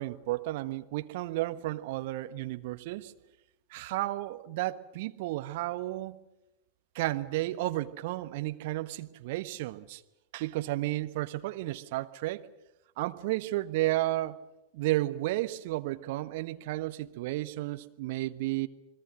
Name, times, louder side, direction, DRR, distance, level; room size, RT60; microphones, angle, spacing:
voice 1, 0.0-3.1 3.7-6.2 6.9-10.0 10.3-12.4 13.0-14.4 14.7-18.7, right 17 dB, 50° right, 10 dB, 1.3 m, -32 dB
29.5 x 21.0 x 6.5 m, 0.91 s
figure-of-eight pair, 90°, 0 cm